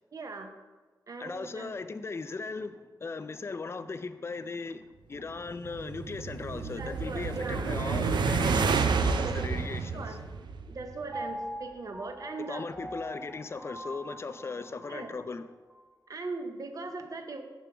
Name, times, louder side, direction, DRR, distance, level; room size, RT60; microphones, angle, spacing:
voice 1, 0.1-0.5 1.1-1.7 6.8-7.7 9.2-9.4 9.7-10.2 10.7-12.7 14.9-15.1 16.1-17.4, right 3 dB, 50° right, 0.7 m, -39 dB
voice 2, 1.2-10.2 12.5-15.5, left 4 dB, 35° left, 0.4 m, -38 dB
sound 1, 5.5-11.0, right 5 dB, 80° right, 0.4 m, -29 dB
Piano, 11.1-15.2 15.7-15.8, equal, 20° right, 1.6 m, -42 dB
6.9 x 3.5 x 6.0 m
wide cardioid pair, 105°, 8 cm